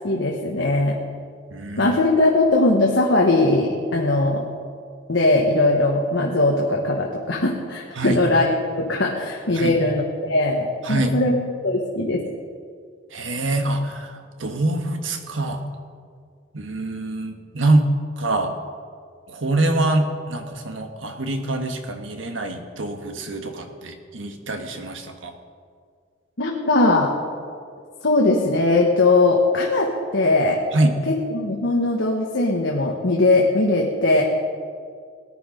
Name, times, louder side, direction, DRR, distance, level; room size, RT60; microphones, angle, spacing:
voice 1, 0.0-1.0 1.8-4.4 5.1-11.4 11.6-12.2 26.4-27.1 28.0-30.6 31.1-34.2, left 2 dB, 70° left, -1 dB, 1.4 m, -20 dB
voice 2, 1.5-1.9 7.9-8.2 9.5-9.7 10.8-11.2 13.1-14.1 14.4-15.6 16.5-17.9 18.2-18.5 19.3-25.3 30.7-30.9, right 2 dB, 85° right, 5 dB, 1.4 m, -24 dB
18.5 x 10.5 x 5.2 m, 2.1 s
head